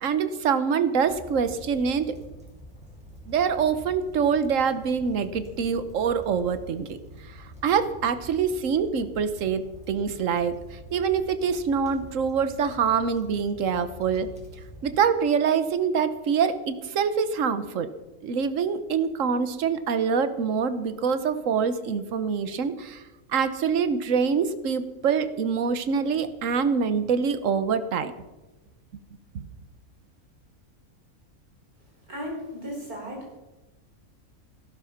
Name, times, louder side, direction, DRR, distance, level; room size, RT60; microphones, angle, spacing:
voice 1, 0.0-2.1 3.3-7.0 7.6-14.3 14.8-17.9 18.2-23.0 23.3-28.1 29.3-29.4, right 6 dB, 60° right, 11 dB, 1.4 m, -25 dB
sound 1, 1.1-15.0, equal, 5° right, 5.0 m, -46 dB
voice 2, 32.1-33.4, equal, 80° right, -1 dB, 5.5 m, -35 dB
14.5 x 12.5 x 5.9 m, 1.1 s
omnidirectional pair, 1.5 m